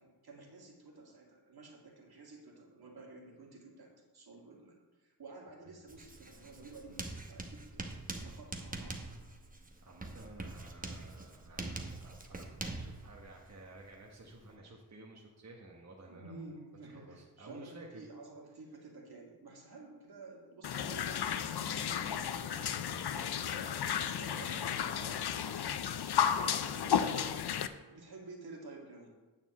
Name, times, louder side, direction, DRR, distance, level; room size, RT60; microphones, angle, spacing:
voice 1, 0.0-7.9 8.2-9.0 16.1-22.8 24.1-25.2 25.9-26.0 26.4-27.0 27.9-29.1, right 3 dB, 70° right, -1 dB, 2.0 m, -52 dB
Writing, 5.9-14.6, right 2 dB, 20° right, 0.9 m, -44 dB
voice 2, 9.8-16.4 16.9-18.1 22.9-25.3 26.0-27.0, right 2 dB, 45° right, -2 dB, 1.1 m, -53 dB
sound 1, 20.6-27.7, left 8 dB, 80° left, 0.5 m, -33 dB
9.2 x 4.2 x 7.1 m, 1.2 s
wide cardioid pair, 125°, 39 cm